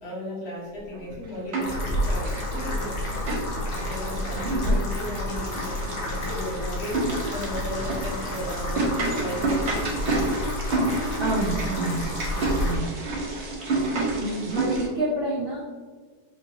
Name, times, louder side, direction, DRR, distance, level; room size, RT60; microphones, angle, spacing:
voice 1, 0.0-10.6 12.9-13.5, left 1 dB, 40° left, -6 dB, 1.3 m, -36 dB
sound 1, 0.9-1.8 2.1-14.9, right 2 dB, 50° right, 0.9 m, -30 dB
sound 2, 1.6-12.8, left 1 dB, 65° left, 1.4 m, -30 dB
sound 3, 2.3-10.3, left 2 dB, 85° left, 1.5 m, -45 dB
voice 2, 4.3-4.8 11.2-12.1 12.3-12.9 14.2-15.6, right 2 dB, 85° right, -5 dB, 0.5 m, -28 dB
4.8 x 2.9 x 2.8 m, 1.5 s
omnidirectional pair, 1.9 m